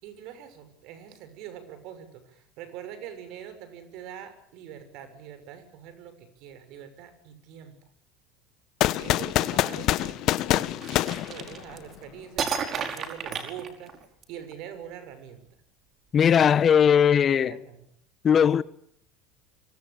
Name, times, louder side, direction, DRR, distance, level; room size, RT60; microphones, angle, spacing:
voice 1, 0.0-7.7 9.0-14.0 14.3-15.4 17.3-17.8, right 9 dB, 65° right, 6.5 m, -44 dB
sound 1, 8.8-12.0, left 15 dB, 55° left, 1.4 m, -26 dB
sound 2, 10.8-12.0 12.4-14.2, right 6 dB, 40° right, 5.0 m, -32 dB
voice 2, 16.1-17.6 18.2-18.6, left 8 dB, 40° left, 1.1 m, -19 dB
25.0 x 24.0 x 8.5 m
hypercardioid pair, 80°, 0 cm